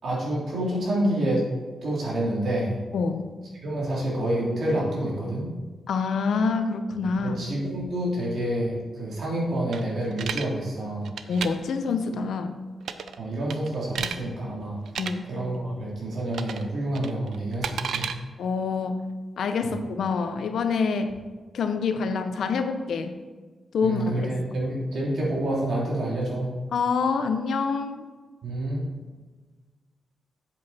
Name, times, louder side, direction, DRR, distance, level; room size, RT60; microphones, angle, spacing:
voice 1, 0.0-1.5 1.8-2.8 3.6-5.5 7.2-11.1 13.2-14.8 15.3-18.1 19.6-19.7 23.8-26.5 28.4-28.8, right 1 dB, 65° right, -5 dB, 3.2 m, -28 dB
voice 2, 2.9-3.3 5.9-7.4 11.3-12.5 15.0-15.2 18.4-19.0 19.4-21.2 21.5-23.2 23.7-24.3 26.7-28.1, left 4 dB, 80° left, 8 dB, 0.7 m, -26 dB
sound 1, 9.7-10.5 11.0-11.5 12.8-13.2 13.5-14.2 14.9-15.1 16.3-16.7 16.9-18.1, right 7 dB, 85° right, 0.5 m, -32 dB
8.0 x 7.7 x 4.2 m, 1.3 s
wide cardioid pair, 115°, 0 cm